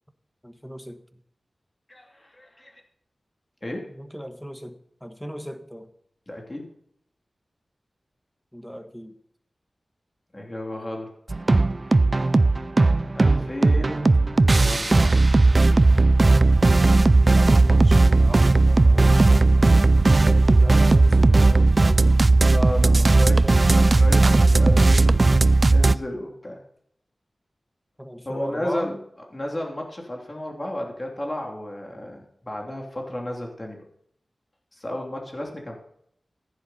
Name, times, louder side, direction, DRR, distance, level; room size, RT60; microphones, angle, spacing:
voice 1, 0.4-1.2 3.9-5.9 8.5-9.2 13.3-14.4 17.2-22.3 23.2-23.6 28.0-29.0, equal, 5° left, 7 dB, 1.4 m, -38 dB
voice 2, 1.9-2.8 3.6-3.9 6.3-6.7 10.3-11.1 13.1-14.2 14.6-15.2 22.5-23.4 23.7-25.4 25.7-26.6 28.2-29.0 29.3-33.8 34.7-35.8, left 1 dB, 25° left, 0 dB, 3.0 m, -33 dB
sound 1, 11.3-25.9, right 2 dB, 40° right, 0.4 m, -16 dB
15.0 x 10.5 x 4.3 m, 0.69 s
wide cardioid pair, 95°, 0 cm